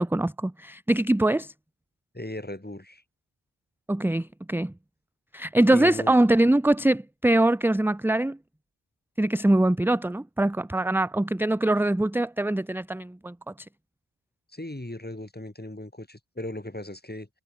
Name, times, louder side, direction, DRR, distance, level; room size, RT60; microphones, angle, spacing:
voice 1, 0.0-1.5 3.9-4.7 5.3-8.4 9.2-13.5, right 1 dB, 5° right, 0.4 m, -23 dB
voice 2, 2.1-3.0 5.7-6.1 14.5-17.3, left 1 dB, 20° left, 3.3 m, -37 dB
wide cardioid pair, 45°, 47 cm